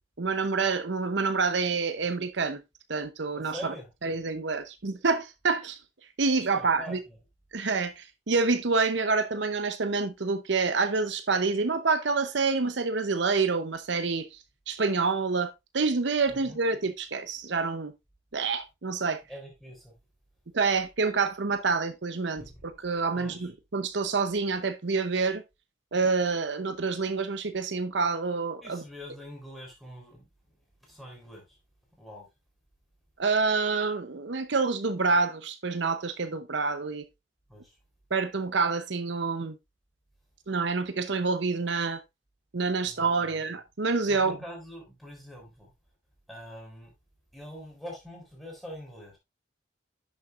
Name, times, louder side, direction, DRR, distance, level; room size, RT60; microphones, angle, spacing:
voice 1, 0.2-2.6 2.9-3.7 4.0-5.8 6.2-7.0 7.5-14.4 14.7-17.9 18.3-19.2 20.5-25.4 25.9-28.8 33.2-37.0 38.1-39.6 40.5-42.0 42.5-44.4, right 4 dB, 65° right, 0.7 m, -27 dB
voice 2, 3.4-3.9 6.6-7.2 16.3-16.6 19.3-19.9 21.0-21.2 22.5-22.6 23.1-23.5 28.6-30.3 30.8-31.6 32.0-32.3 37.5-37.7 42.8-43.4 44.1-45.7 46.3-46.9 47.3-49.2, equal, ahead, 3.7 m, -44 dB
11.0 x 6.8 x 2.5 m
head